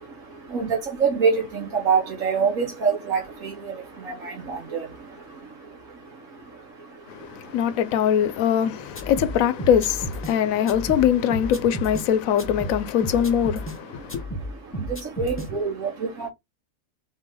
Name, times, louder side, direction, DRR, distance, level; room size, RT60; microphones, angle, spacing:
voice 1, 0.0-8.3 8.5-9.1 10.3-10.8 13.7-16.3, right 5 dB, 75° right, 1.6 m, -28 dB
voice 2, 7.1-14.2, left 9 dB, 85° left, 1.0 m, -22 dB
sound 1, 9.0-10.3 10.7-12.1 12.4-13.8 14.1-15.5, equal, 10° left, 0.9 m, -33 dB
4.0 x 3.2 x 3.7 m
omnidirectional pair, 1.4 m